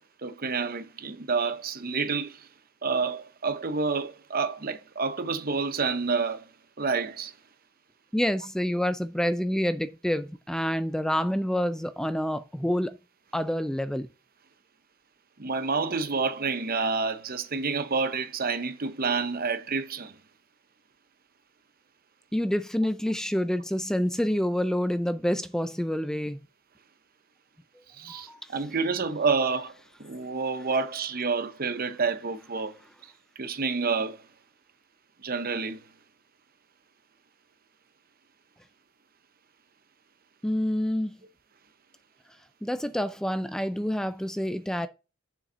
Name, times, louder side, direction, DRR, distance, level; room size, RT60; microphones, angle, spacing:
voice 1, 0.2-2.4 2.8-6.5 6.8-7.3 15.4-20.1 28.0-29.7 30.0-32.7 33.4-34.2 35.2-35.8, right 4 dB, 45° right, 0.8 m, -28 dB
voice 2, 8.1-13.0 13.3-14.1 22.3-26.4 28.1-28.4 40.4-41.2 42.6-44.9, equal, 5° left, 0.4 m, -27 dB
7.1 x 5.3 x 6.1 m
head